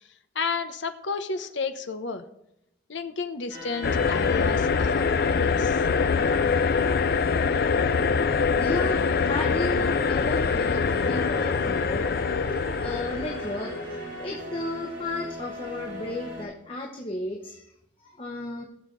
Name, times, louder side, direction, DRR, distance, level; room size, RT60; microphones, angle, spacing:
voice 1, 0.3-2.2 2.9-5.9, left 4 dB, 75° left, 8 dB, 1.0 m, -32 dB
sound 1, 3.5-16.4, equal, 60° right, 4.3 m, -38 dB
sound 2, 3.8-14.1, left 5 dB, 55° left, 0.4 m, -24 dB
voice 2, 8.6-12.1 12.5-13.8 14.2-17.7 18.0-18.6, left 1 dB, 30° left, 1 dB, 1.0 m, -34 dB
19.0 x 7.2 x 3.3 m, 0.81 s
head